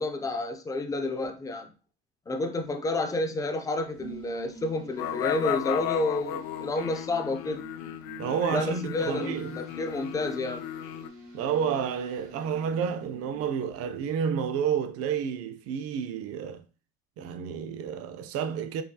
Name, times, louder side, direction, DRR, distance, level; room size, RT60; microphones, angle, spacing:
voice 1, 0.0-1.7 2.3-7.7 8.5-10.7, left 2 dB, 10° left, 0.3 m, -30 dB
sound 1, 3.8-14.2, right 3 dB, 80° right, 1.5 m, -48 dB
sound 2, 5.0-11.1, left 11 dB, 80° left, 0.5 m, -35 dB
voice 2, 8.2-9.7 11.3-16.7 17.2-18.8, right 7 dB, 55° right, 0.5 m, -30 dB
4.8 x 2.3 x 2.7 m
cardioid pair, 140°, 29 cm